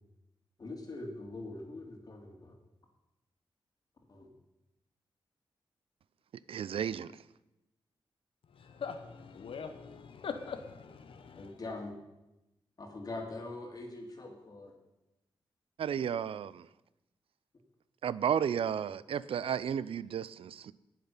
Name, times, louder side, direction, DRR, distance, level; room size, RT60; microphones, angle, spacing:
voice 1, 0.6-2.6 4.1-4.3 11.4-12.0 12.8-14.8, left 2 dB, 45° left, 2.7 m, -43 dB
voice 2, 6.5-7.1 15.8-16.6 18.0-20.7, right 8 dB, 90° right, 0.5 m, -33 dB
voice 3, 8.5-11.5, left 6 dB, 75° left, 1.0 m, -42 dB
19.0 x 7.4 x 5.6 m
wide cardioid pair, 135°, 9 cm